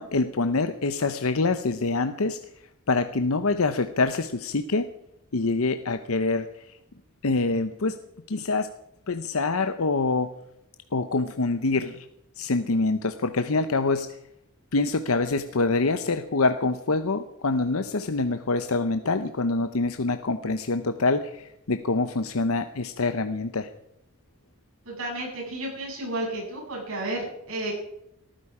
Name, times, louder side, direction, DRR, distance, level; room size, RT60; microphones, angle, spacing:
voice 1, 0.0-2.4 2.9-4.9 5.3-6.5 7.2-7.9 8.3-8.7 9.1-10.3 10.9-12.1 12.4-14.1 14.7-23.7, left 3 dB, 70° left, 9 dB, 0.8 m, -25 dB
voice 2, 24.8-27.7, right 1 dB, 65° right, -2 dB, 8.0 m, -32 dB
19.0 x 14.0 x 4.9 m, 0.82 s
head